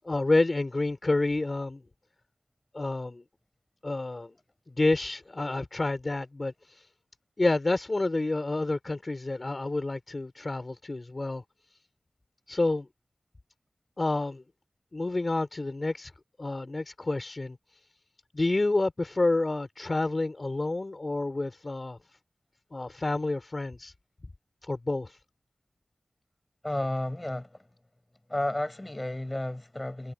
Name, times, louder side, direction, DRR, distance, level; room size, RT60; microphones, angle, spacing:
voice 1, 0.0-1.8 2.7-3.2 3.8-4.3 4.8-6.5 7.4-11.4 12.5-12.9 14.0-14.4 14.9-16.1 16.4-17.6 18.3-22.0 22.7-23.9 24.7-25.1, left 2 dB, 40° left, 4.9 m, -28 dB
voice 2, 26.6-27.7 28.3-30.1, left 1 dB, 20° left, 7.2 m, -32 dB
wide cardioid pair, 60°, 0 cm